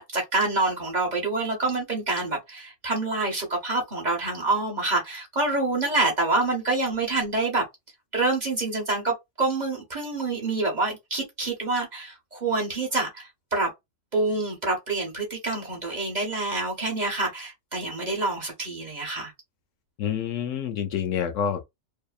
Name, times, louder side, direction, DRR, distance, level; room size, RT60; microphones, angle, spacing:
voice 1, 0.0-7.6 8.1-13.7 14.1-19.3, right 2 dB, 40° right, 0.9 m, -27 dB
voice 2, 20.0-21.6, left 8 dB, 75° left, 0.9 m, -27 dB
2.8 x 2.1 x 2.3 m
omnidirectional pair, 1.4 m